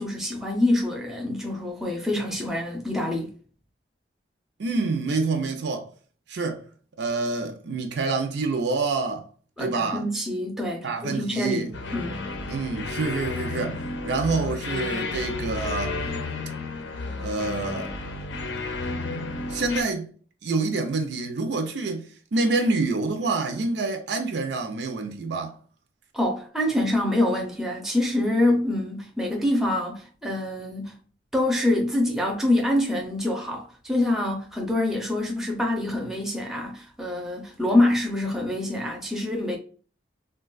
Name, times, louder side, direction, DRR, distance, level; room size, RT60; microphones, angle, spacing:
voice 1, 0.0-3.3 9.6-12.2 26.1-30.9 31.3-39.6, left 1 dB, ahead, 0.5 m, -25 dB
voice 2, 4.6-5.9 6.3-6.6 7.0-9.3 9.6-10.0 10.8-11.7 12.5-16.0 17.2-17.9 19.5-20.1 20.4-25.6, right 3 dB, 70° right, 0.5 m, -27 dB
sound 1, 11.7-19.8, left 3 dB, 80° left, 0.5 m, -32 dB
3.3 x 2.2 x 2.3 m
head